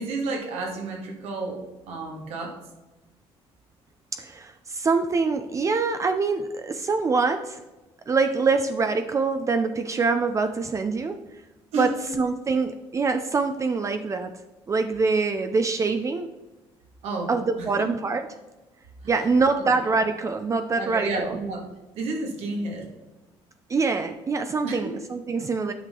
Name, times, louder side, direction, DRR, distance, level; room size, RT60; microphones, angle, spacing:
voice 1, 0.0-2.6 11.7-12.0 17.0-17.3 17.6-17.9 19.0-19.2 19.6-19.7 20.8-21.6 21.9-22.9 24.6-25.0, right 3 dB, 85° right, 1 dB, 2.0 m, -31 dB
voice 2, 4.1-7.6 8.1-11.2 11.8-11.9 12.2-14.3 14.7-16.3 17.3-18.3 19.1-21.4 23.7-25.7, right 4 dB, 30° right, 8 dB, 0.5 m, -24 dB
9.3 x 5.8 x 3.8 m, 1.1 s
cardioid pair, 110°, 10 cm